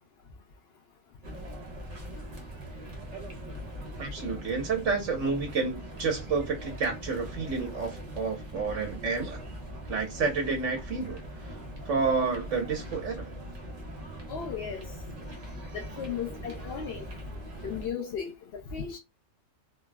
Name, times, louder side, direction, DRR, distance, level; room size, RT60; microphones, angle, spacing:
sound 1, 1.2-17.9, equal, 40° right, 0.6 m, -41 dB
voice 1, 4.0-9.4 9.9-11.2 11.8-13.3, right 4 dB, 75° right, 1.5 m, -30 dB
voice 2, 14.3-14.8 15.7-17.1 17.6-19.0, left 7 dB, 60° left, 0.8 m, -35 dB
3.8 x 2.0 x 2.3 m
omnidirectional pair, 1.3 m